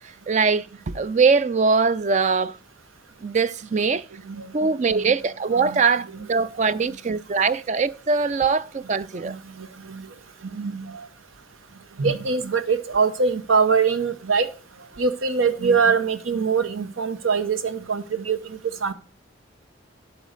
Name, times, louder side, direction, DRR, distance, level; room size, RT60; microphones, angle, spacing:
voice 1, 0.3-2.6 3.2-4.1 4.5-9.4, right 4 dB, 35° right, 0.4 m, -22 dB
voice 2, 5.6-5.9 9.2-10.1 10.5-11.1 12.0-14.5 15.0-18.9, right 5 dB, 90° right, 0.8 m, -23 dB
11.0 x 5.0 x 6.5 m
head